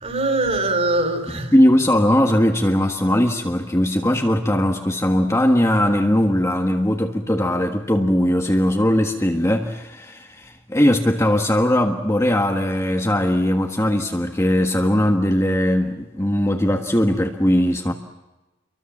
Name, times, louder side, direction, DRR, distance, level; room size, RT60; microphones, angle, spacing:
voice 1, 0.0-1.5, right 2 dB, 30° right, 7 dB, 4.1 m, -22 dB
voice 2, 1.3-17.9, left 1 dB, 15° left, 2 dB, 1.6 m, -19 dB
29.5 x 24.0 x 7.4 m, 1.1 s
head